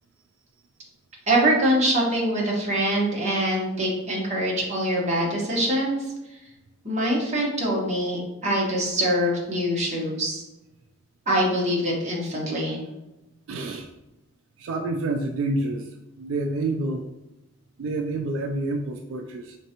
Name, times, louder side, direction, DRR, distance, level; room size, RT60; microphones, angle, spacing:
voice 1, 1.3-6.0 6.8-10.4 11.3-12.8, right 1 dB, 35° right, -3 dB, 1.1 m, -24 dB
voice 2, 13.5-13.9 14.6-17.1 17.8-19.6, right 2 dB, 80° right, 4 dB, 0.3 m, -28 dB
4.2 x 3.2 x 2.9 m, 0.99 s
head